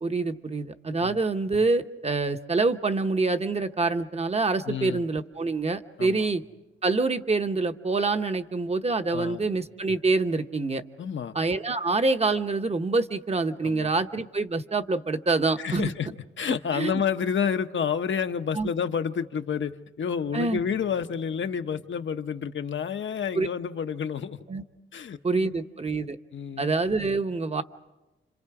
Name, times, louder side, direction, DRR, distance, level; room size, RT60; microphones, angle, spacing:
voice 1, 0.0-6.4 6.8-10.8 11.3-15.9 16.7-17.0 18.5-18.7 20.3-20.6 23.4-23.5 24.5-24.6 25.2-26.2 26.6-27.6, right 3 dB, 30° right, 8 dB, 1.0 m, -26 dB
voice 2, 4.7-5.1 6.0-6.3 9.1-9.4 11.0-11.3 13.6-13.9 15.6-16.1 16.4-19.7 20.0-24.4 24.9-25.6 25.9-26.0 26.3-26.8, left 7 dB, 70° left, 8 dB, 1.0 m, -29 dB
30.0 x 26.5 x 4.9 m, 1.0 s
wide cardioid pair, 105°, 20 cm